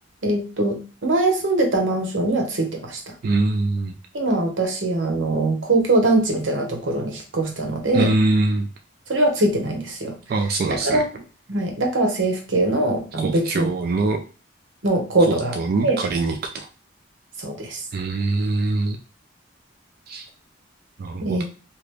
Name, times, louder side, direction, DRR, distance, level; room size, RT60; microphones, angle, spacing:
voice 1, 0.2-3.1 4.1-8.1 9.1-10.1 10.7-11.0 11.5-13.7 14.8-15.5 15.8-16.0 17.4-17.8 21.2-21.4, right 2 dB, 90° right, 3 dB, 1.0 m, -22 dB
voice 2, 3.2-3.9 7.9-8.7 10.3-11.0 13.2-14.2 15.3-16.7 17.9-19.0 20.1-20.3 21.0-21.4, right 2 dB, 55° right, 3 dB, 0.4 m, -23 dB
2.9 x 2.4 x 3.3 m, 0.36 s
head